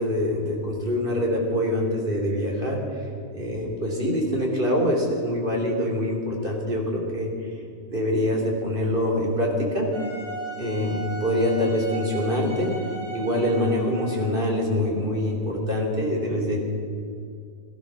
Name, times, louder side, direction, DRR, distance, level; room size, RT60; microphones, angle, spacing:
voice 1, 0.0-2.8 3.3-7.3 7.9-9.9 10.6-12.8 13.1-16.6, left 1 dB, 40° right, -1 dB, 3.4 m, -25 dB
Wind instrument woodwind instrument, 9.9-14.4, right 3 dB, 55° right, 6.0 m, -37 dB
18.0 x 12.5 x 6.3 m, 2.4 s
omnidirectional pair, 1.4 m